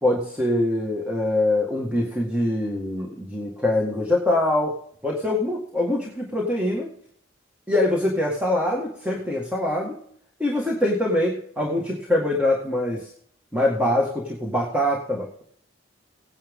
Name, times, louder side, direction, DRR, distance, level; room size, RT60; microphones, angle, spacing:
voice 1, 0.0-4.7 5.0-6.9 7.7-10.0 10.4-13.1 13.5-15.4, left 1 dB, 5° right, -2 dB, 1.9 m, -24 dB
17.0 x 10.0 x 3.7 m, 0.63 s
head